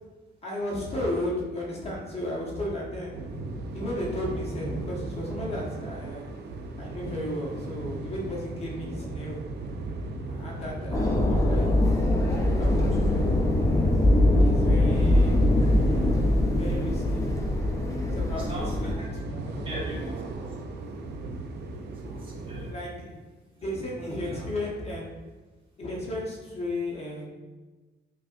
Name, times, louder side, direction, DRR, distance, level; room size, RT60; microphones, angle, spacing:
voice 1, 0.4-3.1 3.7-6.3 6.8-9.4 10.2-11.7 12.1-13.3 14.3-15.4 16.5-17.3 18.1-18.9 19.2-19.8 22.7-23.2 23.6-25.0 25.8-27.3, left 1 dB, 35° left, -4 dB, 0.9 m, -34 dB
sound 1, 3.1-22.7, right 2 dB, 65° right, 0.4 m, -38 dB
sound 2, 10.9-19.0, left 1 dB, 15° left, 0.4 m, -22 dB
voice 2, 18.4-20.5 21.9-22.8 23.5-23.7 23.9-24.5, right 1 dB, 30° right, -4 dB, 1.0 m, -41 dB
5.7 x 2.4 x 2.5 m, 1.3 s
cardioid pair, 160°, 19 cm